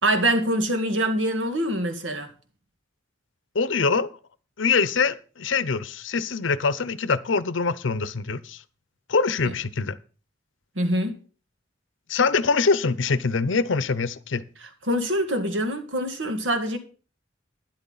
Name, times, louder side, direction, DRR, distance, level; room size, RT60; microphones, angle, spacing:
voice 1, 0.0-2.3 9.4-9.5 10.8-11.2 14.6-16.8, right 1 dB, 75° right, 1.9 m, -25 dB
voice 2, 3.5-4.1 4.6-8.6 9.1-9.9 12.1-14.4, left 4 dB, 80° left, 0.7 m, -24 dB
12.5 x 10.5 x 4.0 m
head